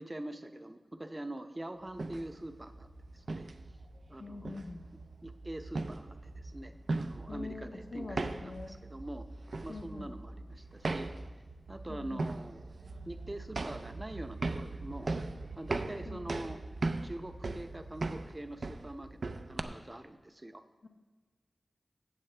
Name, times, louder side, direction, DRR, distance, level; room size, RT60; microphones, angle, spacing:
voice 1, 0.0-2.9 3.1-3.5 4.1-4.5 5.2-9.3 9.6-11.1 11.7-12.7 13.1-15.1 15.6-16.6 17.0-19.2 19.5-20.6, right 1 dB, 25° right, 8 dB, 0.7 m, -44 dB
sound 1, 1.9-19.6, right 3 dB, 65° right, 0.5 m, -39 dB
voice 2, 4.2-4.8 7.3-8.7 9.7-10.1 11.9-12.3 16.0-16.4 20.8-20.9, left 3 dB, 65° left, 4 dB, 0.8 m, -44 dB
15.5 x 7.5 x 3.3 m, 1.3 s
wide cardioid pair, 75°, 0 cm